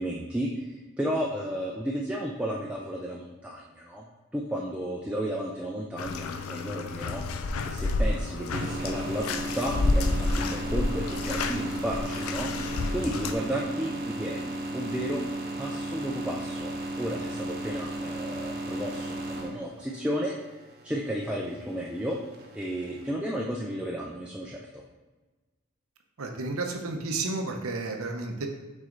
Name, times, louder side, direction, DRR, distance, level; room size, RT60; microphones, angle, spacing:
voice 1, 0.0-4.1 4.3-7.2 7.6-12.5 12.9-15.2 15.6-16.7 17.0-20.3 20.8-22.2 22.5-24.8, equal, 5° right, -2 dB, 0.4 m, -33 dB
Bathtub (filling or washing), 6.0-13.3, left 2 dB, 80° left, 0.5 m, -30 dB
sound 1, 8.5-23.1, right 1 dB, 45° right, 0.8 m, -36 dB
voice 2, 26.2-28.5, right 3 dB, 85° right, 4 dB, 0.8 m, -32 dB
6.2 x 4.2 x 3.9 m, 1.2 s
head